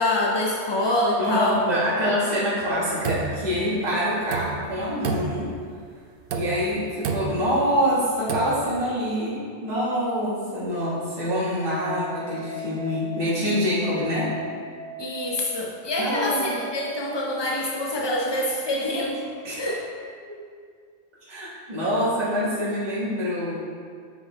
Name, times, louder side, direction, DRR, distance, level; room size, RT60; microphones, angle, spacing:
voice 1, 0.0-1.6 15.0-19.2 19.6-19.8, left 1 dB, 45° left, -1 dB, 0.3 m, -25 dB
voice 2, 1.2-5.5 6.3-14.3 16.0-16.6 19.4-19.7 21.2-23.6, equal, 35° right, -9 dB, 1.5 m, -25 dB
sound 1, 2.6-3.8 4.2-4.8 5.0-5.7 6.2-6.8 7.0-7.5 8.2-8.7, right 5 dB, 60° right, 0.7 m, -30 dB
sound 2, 11.6-19.6, right 1 dB, 80° left, 2.0 m, -40 dB
6.2 x 5.1 x 4.1 m, 2.1 s
omnidirectional pair, 1.2 m